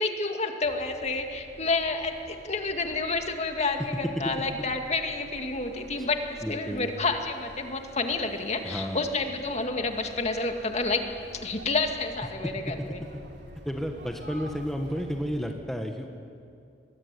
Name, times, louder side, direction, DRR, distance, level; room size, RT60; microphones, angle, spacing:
voice 1, 0.0-11.0 11.3-13.0, left 3 dB, 40° left, 5 dB, 2.1 m, -29 dB
sound 1, 0.6-15.5, equal, 70° right, 3.1 m, -49 dB
voice 2, 6.4-6.9 8.6-9.1 12.4-12.5 13.6-16.1, equal, ahead, 3 dB, 1.4 m, -32 dB
24.5 x 21.5 x 9.8 m, 2.4 s
head